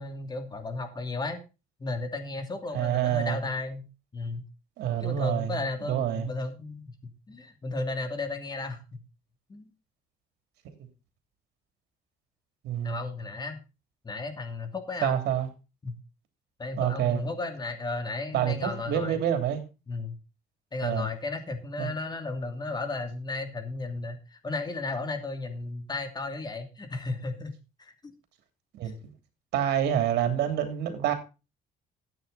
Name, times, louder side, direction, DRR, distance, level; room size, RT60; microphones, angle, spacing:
voice 1, 0.0-1.4 1.8-3.8 4.1-4.4 5.0-9.0 9.5-9.7 12.8-13.6 14.0-15.2 15.8-16.0 16.6-19.2 19.9-20.2 20.7-27.5 27.8-28.1, left 3 dB, 25° left, 7 dB, 2.7 m, -34 dB
voice 2, 2.7-3.4 4.8-6.3 12.6-13.0 15.0-15.5 16.8-17.2 18.3-19.6 20.8-21.1 21.8-21.9 28.8-29.1 29.5-31.1, right 10 dB, 75° right, 7 dB, 3.0 m, -27 dB
13.0 x 9.1 x 4.1 m, 0.30 s
cardioid pair, 110°, 17 cm